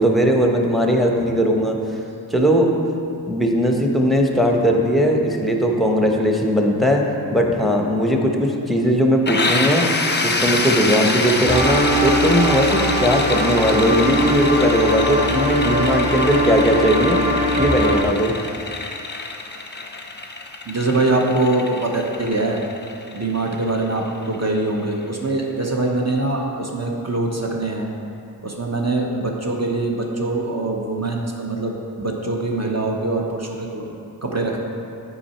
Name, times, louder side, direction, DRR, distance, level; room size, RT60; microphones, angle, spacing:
voice 1, 0.0-1.8 2.3-2.7 3.3-7.0 7.3-9.9 10.2-17.2 17.6-18.3, equal, ahead, 1 dB, 0.9 m, -18 dB
sound 1, 9.3-24.8, left 3 dB, 25° left, 0.7 m, -26 dB
sound 2, 11.5-18.0, equal, 15° right, 1.1 m, -21 dB
voice 2, 20.7-22.6 23.1-27.9 28.4-34.6, right 2 dB, 40° right, 0 dB, 1.0 m, -23 dB
8.4 x 4.8 x 4.4 m, 2.7 s
wide cardioid pair, 45°, 39 cm